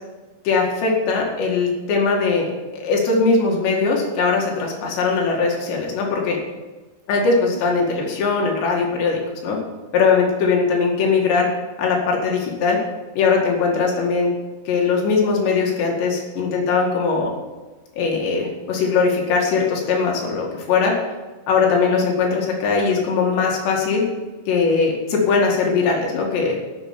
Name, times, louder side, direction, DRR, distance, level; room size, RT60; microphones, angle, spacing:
voice 1, 0.5-2.5 2.7-6.4 7.1-9.6 9.9-11.5 11.8-12.8 13.2-14.3 14.7-17.3 18.0-20.9 21.5-24.0 24.5-26.6, left 4 dB, 70° left, -1 dB, 4.2 m, -20 dB
12.5 x 6.8 x 8.8 m, 1.2 s
omnidirectional pair, 5.2 m